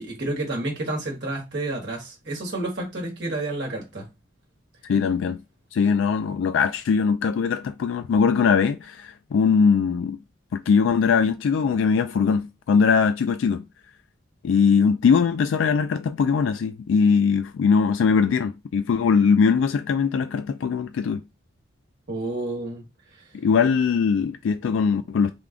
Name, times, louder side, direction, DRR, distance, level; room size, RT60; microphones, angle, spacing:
voice 1, 0.0-4.1 22.1-22.8 23.2-23.3, right 2 dB, 55° right, 1.1 m, -30 dB
voice 2, 4.9-5.4 5.7-10.2 10.5-13.6 14.4-21.2 23.3-25.3, left 6 dB, 75° left, 0.3 m, -21 dB
3.5 x 2.3 x 3.6 m
head